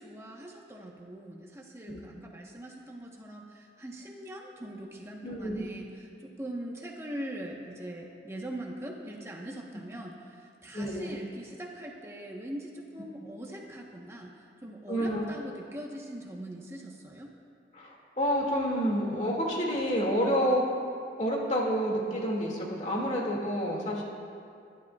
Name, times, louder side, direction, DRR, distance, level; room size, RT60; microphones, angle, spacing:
voice 1, 0.0-17.3, right 1 dB, 15° right, -1 dB, 1.0 m, -42 dB
voice 2, 5.2-5.6 10.7-11.2 14.9-15.3 17.7-20.8 21.2-24.0, equal, 40° left, -2 dB, 2.2 m, -29 dB
25.5 x 12.0 x 2.4 m, 2.4 s
head